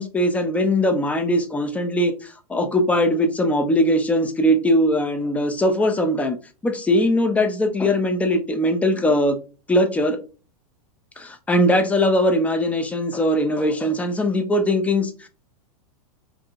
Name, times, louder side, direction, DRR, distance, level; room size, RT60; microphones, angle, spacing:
voice 1, 0.0-6.4 6.6-9.4 9.7-10.2 11.2-15.3, left 1 dB, 5° left, 0.3 m, -20 dB
4.5 x 2.5 x 2.4 m
hypercardioid pair, 140°, 19 cm